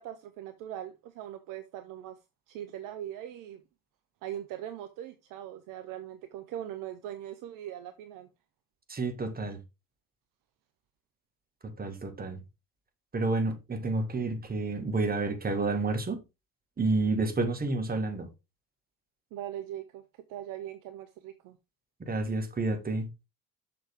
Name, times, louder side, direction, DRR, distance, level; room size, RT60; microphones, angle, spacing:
voice 1, 0.0-2.2 2.5-3.6 4.2-8.3 19.3-20.0 20.3-21.6, right 11 dB, 45° right, 0.9 m, -40 dB
voice 2, 8.9-9.6 11.8-12.4 13.1-16.2 16.8-18.3 22.1-23.1, right 3 dB, 20° right, 1.8 m, -30 dB
6.7 x 6.4 x 3.6 m
figure-of-eight pair, 60°, 46 cm